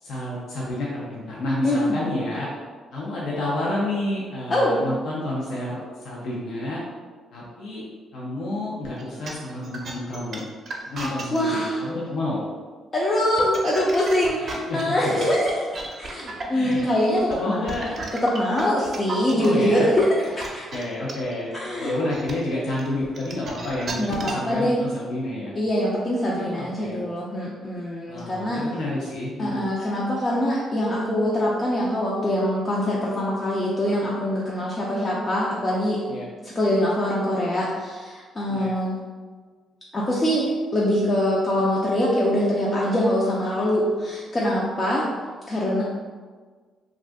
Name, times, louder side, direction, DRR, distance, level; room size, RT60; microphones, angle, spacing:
voice 1, 0.0-2.5 2.9-6.8 7.3-10.5 10.9-12.4 14.7-15.1 16.5-16.9 17.3-17.9 19.3-19.9 20.7-21.5 21.8-25.5 26.3-27.0 28.1-29.6 36.1-36.3 38.5-38.7, left 1 dB, 70° left, -6 dB, 0.6 m, -29 dB
voice 2, 4.5-4.8 11.0-11.8 12.9-15.7 16.0-17.7 18.1-20.6 21.5-22.0 24.0-24.8 25.5-28.6 29.4-36.0 36.4-39.0 39.9-45.1 45.5-45.8, left 1 dB, 30° left, -5 dB, 0.5 m, -23 dB
sound 1, 9.0-11.4 13.2-19.5 20.0-24.5, right 3 dB, 50° right, 0.6 m, -35 dB
2.6 x 2.4 x 3.4 m, 1.5 s
cardioid pair, 90°, 0 cm